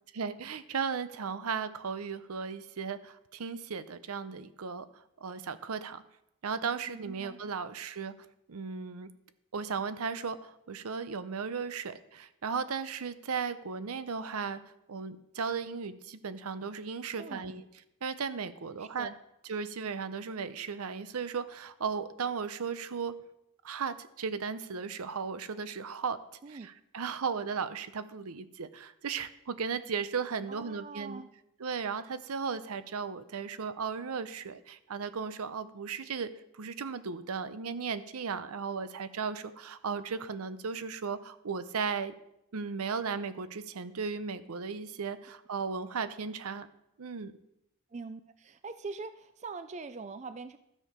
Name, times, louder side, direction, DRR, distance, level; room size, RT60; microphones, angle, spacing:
voice 1, 0.1-4.9 5.2-6.0 6.4-8.1 8.5-9.1 9.5-14.6 14.9-17.6 18.0-19.1 19.4-23.2 23.6-26.2 26.5-31.2 31.6-42.1 42.5-46.7 47.0-47.3, right 5 dB, 85° right, 13 dB, 0.6 m, -36 dB
voice 2, 6.9-7.4 17.2-17.5 18.8-19.1 26.4-26.7 30.5-31.3 47.9-50.6, right 4 dB, 30° right, 11 dB, 0.3 m, -43 dB
13.0 x 6.5 x 5.0 m, 0.82 s
head